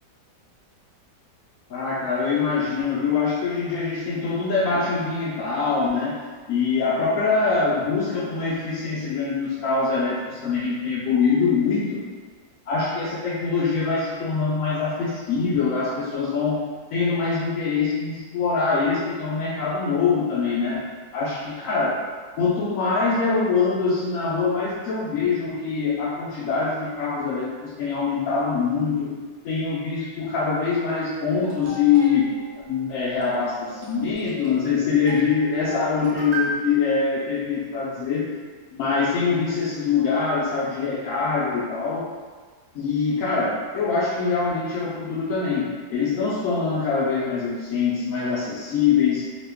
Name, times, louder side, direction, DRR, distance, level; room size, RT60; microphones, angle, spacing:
voice 1, 1.7-6.2 6.5-12.0 12.7-16.6 16.9-20.8 21.1-22.0 22.4-29.2 29.4-38.3 38.7-42.1 42.7-49.3, left 5 dB, 75° left, -5 dB, 0.7 m, -24 dB
sound 1, 31.4-36.5, right 3 dB, 50° right, 0.8 m, -36 dB
3.0 x 2.2 x 3.3 m, 1.5 s
omnidirectional pair, 1.9 m